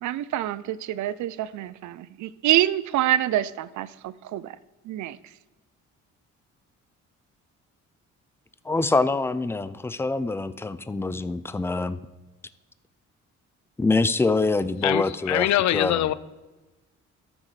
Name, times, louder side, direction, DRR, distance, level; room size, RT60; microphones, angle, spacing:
voice 1, 0.0-4.6 4.8-5.2, right 13 dB, 70° right, 0.5 m, -26 dB
voice 2, 8.6-12.0 13.8-16.0, left 3 dB, 10° left, 0.3 m, -25 dB
voice 3, 14.8-16.1, left 13 dB, 65° left, 0.5 m, -23 dB
13.5 x 6.3 x 3.2 m
cardioid pair, 90°, 30 cm